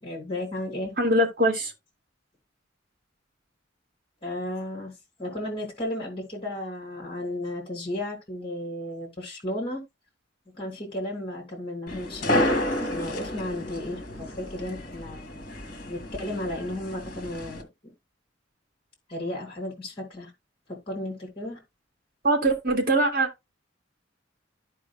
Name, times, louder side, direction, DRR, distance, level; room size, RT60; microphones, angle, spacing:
voice 1, 0.0-0.9 4.2-4.9 5.2-9.8 10.6-12.5 12.9-15.2 15.9-17.9 19.1-20.3 20.7-21.6, left 1 dB, 30° left, 3.1 m, -34 dB
voice 2, 1.0-1.7 22.2-23.3, right 1 dB, 50° right, 3.0 m, -22 dB
sound 1, 11.9-17.6, left 1 dB, 50° left, 2.0 m, -30 dB
14.0 x 4.8 x 2.3 m
head